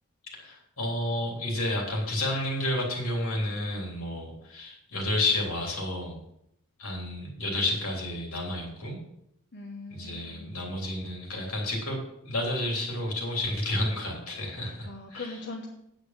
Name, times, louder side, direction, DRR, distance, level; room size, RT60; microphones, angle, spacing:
voice 1, 0.3-6.2 6.8-9.0 9.9-12.0 12.2-15.4, left 1 dB, 70° left, -1 dB, 3.5 m, -31 dB
voice 2, 9.5-10.5 14.8-15.7, left 3 dB, 50° left, 0 dB, 1.2 m, -40 dB
9.5 x 8.8 x 5.9 m, 0.77 s
head